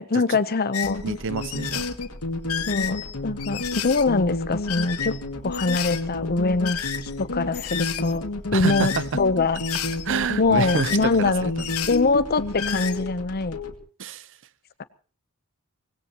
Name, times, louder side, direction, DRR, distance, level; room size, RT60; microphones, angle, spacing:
voice 1, 0.0-1.0 2.7-5.1 5.4-9.6 10.4-11.5 11.9-13.6, left 3 dB, 45° left, 0.8 m, -23 dB
sound 1, 0.7-0.9 1.4-2.1 2.4-4.0 4.6-5.2 5.5-6.0 6.6-7.2 7.5-8.2 8.7-9.2 9.5-10.1 10.4-11.3 11.6-12.0 12.4-13.0, left 9 dB, 70° left, 1.1 m, -32 dB
sound 2, 0.8-13.8, left 2 dB, 90° left, 2.3 m, -31 dB
voice 2, 1.0-1.9 8.5-9.0 10.0-11.7 14.0-14.3, right 5 dB, 60° right, 0.7 m, -28 dB
24.5 x 19.5 x 3.0 m
head